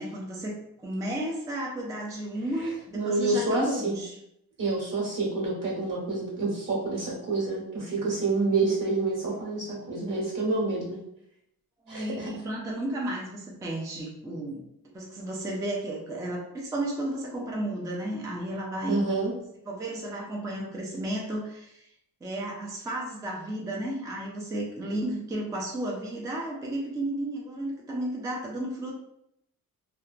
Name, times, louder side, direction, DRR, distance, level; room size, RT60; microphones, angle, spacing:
voice 1, 0.0-4.2 11.8-14.6 14.9-19.1 19.7-21.9 22.2-28.9, right 1 dB, 10° right, -2 dB, 0.4 m, -33 dB
voice 2, 2.9-4.0 4.6-11.0 11.9-12.3 18.9-19.3, right 3 dB, 60° right, -5 dB, 1.2 m, -28 dB
2.7 x 2.2 x 2.4 m, 0.78 s
cardioid pair, 125°, 36 cm